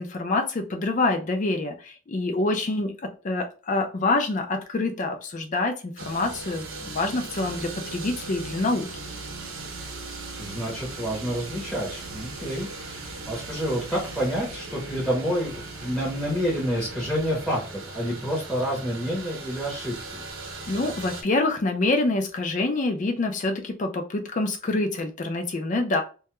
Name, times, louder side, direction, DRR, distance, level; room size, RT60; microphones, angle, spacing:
voice 1, 0.0-8.9 20.7-26.0, left 2 dB, 40° left, 4 dB, 0.4 m, -26 dB
sound 1, 6.0-21.2, right 3 dB, 80° right, 0.6 m, -38 dB
voice 2, 10.3-20.2, equal, 5° left, -6 dB, 0.7 m, -29 dB
2.2 x 2.2 x 2.9 m, 0.35 s
head